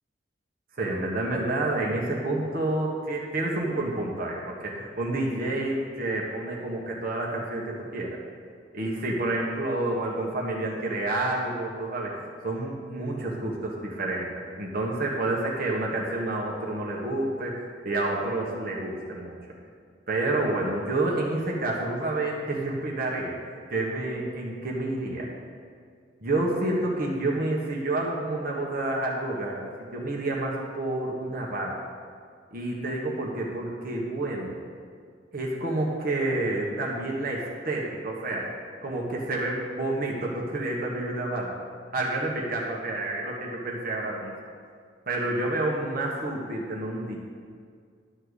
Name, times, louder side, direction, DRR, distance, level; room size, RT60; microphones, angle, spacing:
voice 1, 0.8-8.2 8.7-19.4 20.1-23.4 23.7-25.3 26.2-31.8 32.5-34.6 35.3-38.5 38.8-41.5 41.9-44.3 45.1-47.2, right 2 dB, 50° right, -2 dB, 1.5 m, -29 dB
12.5 x 4.5 x 8.2 m, 2.1 s
head